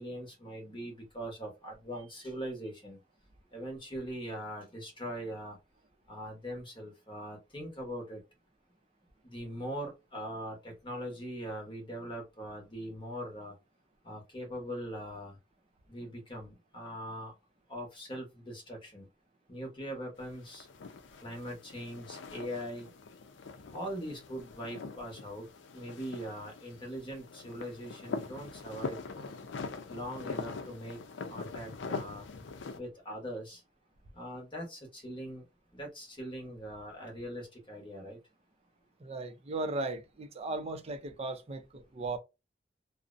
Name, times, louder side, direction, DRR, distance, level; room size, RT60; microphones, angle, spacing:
voice 1, 0.0-3.0 3.5-5.6 6.1-8.2 9.2-13.6 14.0-15.4 15.9-17.3 17.7-19.1 19.5-20.7 21.2-22.9 23.7-25.5 25.7-29.0 29.9-31.0 31.3-32.3 32.7-33.6 34.1-35.5 35.7-38.2, equal, 25° left, 0.8 m, -41 dB
sound 1, 20.2-32.8, left 4 dB, 80° left, 0.5 m, -43 dB
voice 2, 39.0-42.2, right 2 dB, 35° right, 0.4 m, -37 dB
2.5 x 2.0 x 2.4 m
head